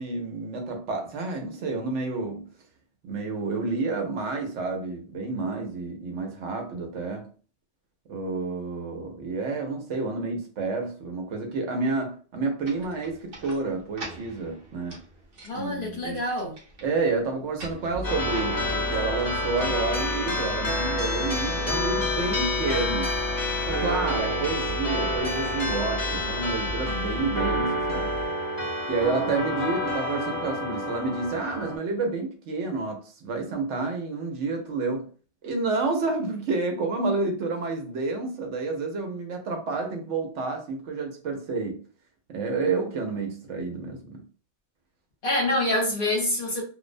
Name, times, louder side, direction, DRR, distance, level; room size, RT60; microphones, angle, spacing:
voice 1, 0.0-2.5 3.0-7.3 8.1-15.0 15.5-16.2 16.8-23.2 23.7-28.1 28.9-35.1 35.4-41.8 42.3-44.2, right 3 dB, 85° right, 1.0 m, -29 dB
sound 1, 12.6-20.5, right 2 dB, 55° right, 1.0 m, -46 dB
voice 2, 15.4-16.6 45.2-46.6, left 1 dB, 55° left, 0.9 m, -26 dB
sound 2, 17.9-28.3, left 1 dB, 30° right, 0.6 m, -35 dB
sound 3, 18.0-31.8, left 1 dB, 20° left, 0.6 m, -28 dB
2.4 x 2.0 x 2.5 m
omnidirectional pair, 1.2 m